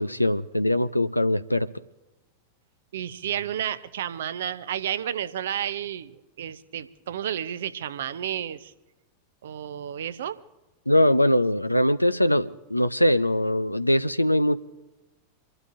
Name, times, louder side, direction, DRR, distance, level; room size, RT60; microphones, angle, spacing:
voice 1, 0.0-1.7 10.9-14.6, left 1 dB, 85° left, 12 dB, 0.4 m, -22 dB
voice 2, 2.9-8.7 9.4-10.4, right 10 dB, 60° right, 14 dB, 0.7 m, -31 dB
28.0 x 12.0 x 2.6 m, 1.1 s
figure-of-eight pair, 90°, 0 cm